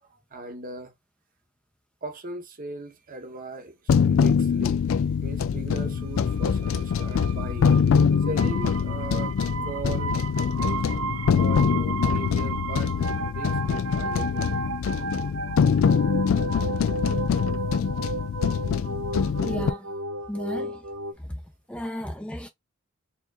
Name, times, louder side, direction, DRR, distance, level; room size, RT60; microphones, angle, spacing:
voice 1, 0.0-0.9 2.0-7.8 8.2-9.3 9.6-10.2 10.6-10.8 11.3-14.6 19.7-19.8, right 3 dB, 45° right, 1.0 m, -39 dB
sound 1, 3.9-19.7, left 6 dB, 85° left, 0.3 m, -24 dB
sound 2, 6.0-21.1, right 4 dB, 90° right, 0.5 m, -34 dB
voice 2, 19.4-19.9 20.3-20.8 21.3-21.4 21.7-22.5, equal, 5° left, 0.5 m, -33 dB
4.4 x 2.9 x 2.4 m
head